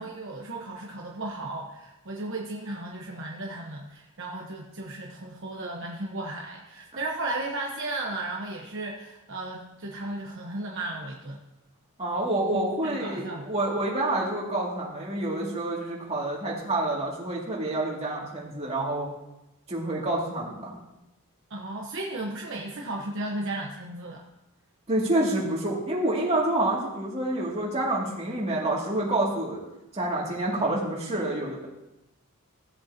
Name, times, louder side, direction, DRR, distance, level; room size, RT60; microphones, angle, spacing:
voice 1, 0.0-11.4 12.8-13.4 21.5-24.2, right 2 dB, 55° right, -1 dB, 1.1 m, -35 dB
voice 2, 12.0-19.1 19.7-20.7 24.9-29.6 29.9-31.7, right 1 dB, 30° right, -4 dB, 2.4 m, -28 dB
16.5 x 7.8 x 2.8 m, 0.93 s
head